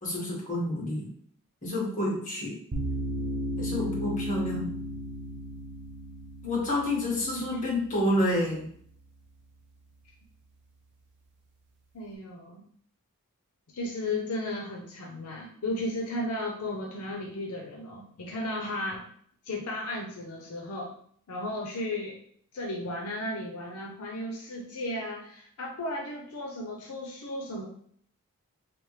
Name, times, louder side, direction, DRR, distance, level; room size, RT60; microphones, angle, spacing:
voice 1, 0.0-1.1 1.6-2.6 3.6-4.6 6.4-8.6, left 1 dB, 35° left, -4 dB, 1.7 m, -29 dB
sound 1, 2.7-9.8, equal, 50° right, 0.7 m, -36 dB
voice 2, 11.9-12.6 13.7-19.0 19.4-20.9 21.3-22.2 22.5-27.7, left 1 dB, 80° left, 0 dB, 0.6 m, -34 dB
3.6 x 3.4 x 3.2 m, 0.62 s
head